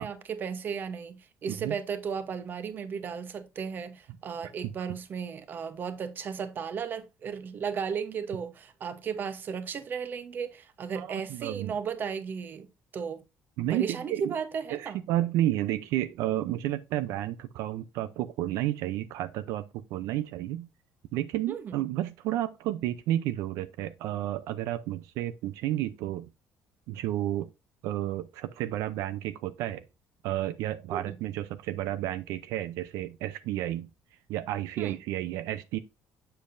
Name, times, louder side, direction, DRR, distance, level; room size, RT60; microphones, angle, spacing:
voice 1, 0.0-12.7 12.9-13.2 13.7-15.0 21.5-21.8 30.9-31.2 34.8-35.0, right 6 dB, 40° right, 0.9 m, -35 dB
voice 2, 11.0-11.7 13.6-14.3 14.7-20.7 21.1-26.3 26.9-27.5 27.8-29.8 30.2-33.9 34.3-35.8, right 13 dB, 90° right, 0.5 m, -31 dB
7.4 x 6.7 x 2.6 m
cardioid pair, 145°, 5 cm